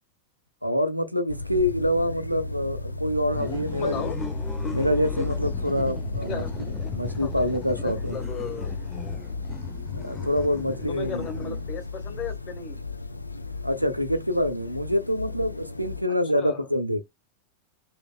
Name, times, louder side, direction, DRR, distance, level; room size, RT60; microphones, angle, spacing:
voice 1, 0.6-4.3 4.7-6.4 6.9-8.2 9.9-11.6 13.6-17.0, equal, 90° right, 0.6 m, -26 dB
sound 1, 1.3-16.0, left 3 dB, 85° left, 0.4 m, -34 dB
sound 2, 3.3-11.9, left 5 dB, 10° left, 0.7 m, -37 dB
voice 2, 3.8-4.2 4.6-4.7 6.3-6.7 7.2-7.3 7.8-8.7 10.9-12.8 16.3-16.6, left 6 dB, 35° left, 1.4 m, -36 dB
3.2 x 2.8 x 2.3 m
figure-of-eight pair, 90°, 0 cm